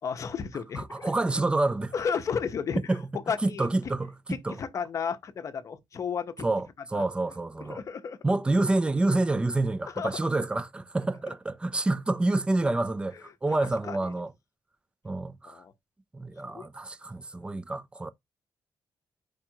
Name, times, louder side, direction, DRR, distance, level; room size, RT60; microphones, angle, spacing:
voice 1, 0.0-1.1 1.9-2.8 3.3-3.7 4.3-6.5 6.9-7.0 7.6-8.2 9.9-10.2 13.5-14.0 15.4-15.7 16.4-16.7, left 6 dB, 40° left, 0.7 m, -33 dB
voice 2, 0.8-1.9 2.9-3.0 3.4-4.1 4.4-4.6 6.4-7.8 8.2-14.3 15.0-15.6 16.1-18.1, right 2 dB, 10° right, 0.3 m, -28 dB
4.7 x 2.4 x 4.5 m
wide cardioid pair, 165°, 8 cm